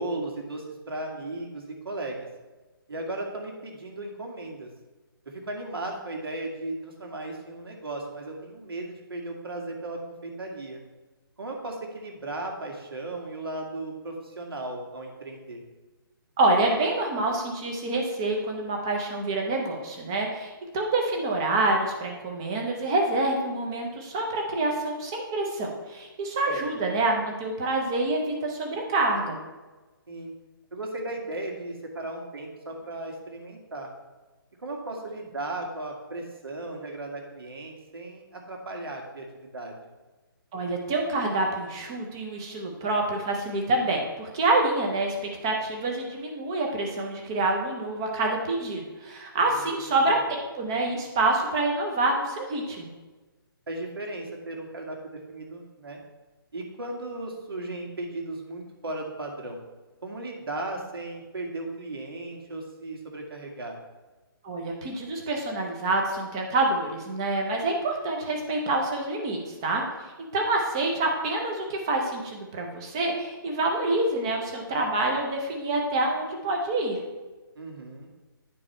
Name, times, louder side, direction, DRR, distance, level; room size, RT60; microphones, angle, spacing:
voice 1, 0.0-2.3 2.9-4.7 5.3-10.8 11.4-15.6 26.5-26.6 30.1-30.3 30.7-33.9 34.6-39.8 49.5-49.8 53.7-56.0 56.5-59.6 60.0-63.8 77.6-78.1, right 2 dB, 75° right, 1 dB, 1.9 m, -36 dB
voice 2, 16.4-29.4 40.5-52.9 64.4-69.8 70.2-77.0, right 2 dB, 10° right, 1 dB, 0.6 m, -27 dB
10.0 x 4.7 x 4.3 m, 1.2 s
hypercardioid pair, 175°, 12 cm